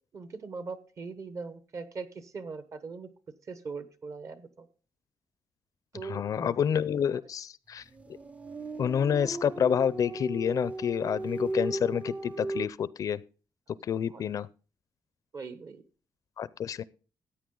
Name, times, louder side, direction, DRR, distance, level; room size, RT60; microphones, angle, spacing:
voice 1, 0.1-3.1 3.5-4.7 5.9-6.7 14.1-14.2 15.3-15.8, right 4 dB, 45° right, 1.0 m, -40 dB
voice 2, 6.0-7.8 8.8-13.2 13.9-14.5 16.4-16.8, left 8 dB, 55° left, 0.4 m, -28 dB
sound 1, 7.9-12.7, right 2 dB, 20° right, 0.5 m, -36 dB
14.0 x 8.8 x 3.8 m
wide cardioid pair, 145°, 7 cm